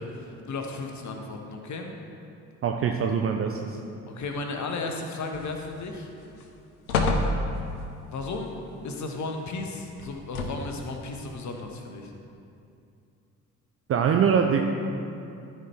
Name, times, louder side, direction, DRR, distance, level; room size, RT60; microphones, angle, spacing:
voice 1, 0.0-1.9 4.1-6.1 8.1-8.6 8.8-12.1, left 3 dB, 40° left, 3 dB, 1.3 m, -34 dB
voice 2, 2.6-3.8 13.9-14.6, right 7 dB, 30° right, 3 dB, 0.6 m, -23 dB
sound 1, 5.3-5.9 6.3-6.4 6.9-7.9 10.0-10.8 11.6-11.7, left 2 dB, 75° left, 0.9 m, -28 dB
14.0 x 4.6 x 4.5 m, 2.6 s
figure-of-eight pair, 50°, 44 cm